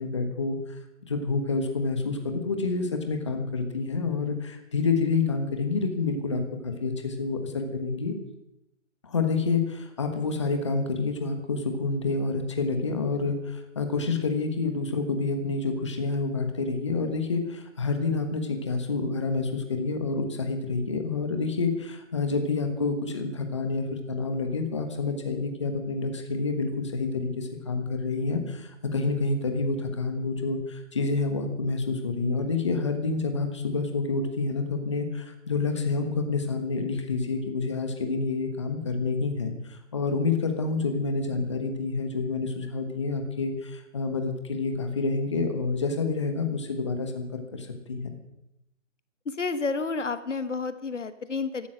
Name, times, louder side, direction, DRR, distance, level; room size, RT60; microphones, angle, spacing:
voice 1, 0.0-2.2 2.4-8.1 9.0-47.2 47.5-48.0, left 4 dB, 25° left, 5 dB, 1.3 m, -28 dB
voice 2, 49.2-51.7, left 4 dB, 65° left, 12 dB, 1.3 m, -30 dB
14.0 x 12.5 x 6.4 m, 0.84 s
hypercardioid pair, 175°, 39 cm